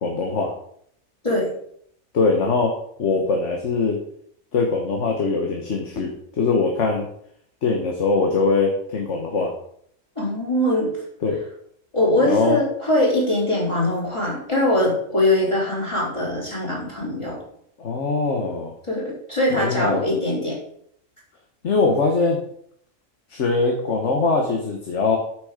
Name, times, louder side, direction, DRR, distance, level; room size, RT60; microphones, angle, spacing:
voice 1, 0.0-0.5 2.1-2.7 3.0-4.0 4.5-7.1 7.6-9.5 11.2-11.4 12.2-12.6 17.8-18.7 19.5-20.0 21.6-22.4 23.3-25.2, left 4 dB, 65° left, 1 dB, 1.6 m, -22 dB
voice 2, 10.2-10.9 11.9-17.4 18.9-20.6, left 1 dB, 25° left, -5 dB, 3.9 m, -22 dB
9.2 x 6.5 x 5.0 m, 0.67 s
omnidirectional pair, 1.3 m